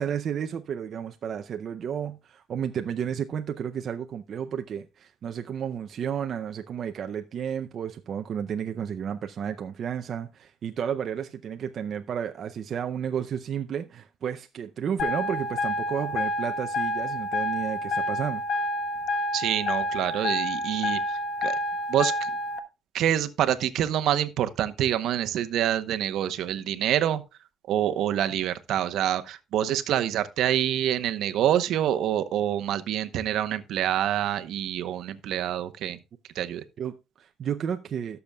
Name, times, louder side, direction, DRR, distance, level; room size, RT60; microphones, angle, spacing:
voice 1, 0.0-18.4 20.8-21.0 36.8-38.2, right 8 dB, 50° right, 0.5 m, -32 dB
sound 1, 15.0-22.6, left 1 dB, 65° left, 1.2 m, -29 dB
voice 2, 19.3-21.6 21.9-22.3 22.9-27.2 27.7-36.0 36.3-36.6, right 11 dB, 70° right, 0.9 m, -26 dB
17.0 x 6.9 x 2.3 m
cardioid pair, 135°, 0 cm